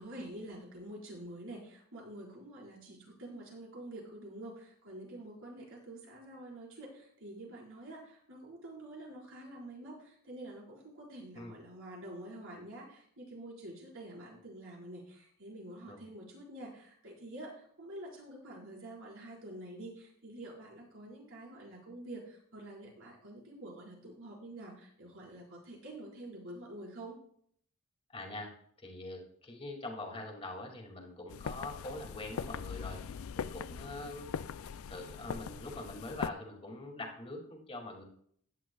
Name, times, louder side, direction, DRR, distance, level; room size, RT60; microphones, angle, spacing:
voice 1, 0.0-27.2, right 1 dB, 60° right, -3 dB, 4.9 m, -47 dB
voice 2, 28.1-28.5 28.8-34.3 34.9-38.0, left 2 dB, 25° left, 1 dB, 2.3 m, -43 dB
sound 1, 31.3-36.3, left 6 dB, 65° left, 0.4 m, -41 dB
16.0 x 10.5 x 2.3 m, 0.63 s
head